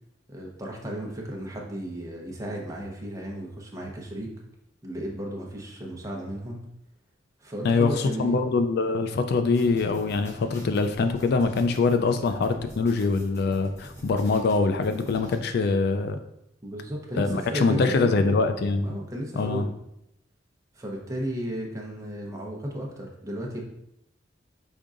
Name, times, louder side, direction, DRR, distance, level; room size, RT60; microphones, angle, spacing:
voice 1, 0.3-4.3 4.8-6.6 7.4-8.4 16.6-18.3 18.8-19.7 20.7-23.6, equal, 20° right, -1 dB, 0.8 m, -34 dB
voice 2, 7.6-16.2 17.2-19.0 19.4-19.7, left 4 dB, 60° left, 8 dB, 0.3 m, -24 dB
sound 1, 9.5-15.4, equal, 15° left, 1.1 m, -45 dB
5.2 x 3.7 x 2.5 m, 0.81 s
head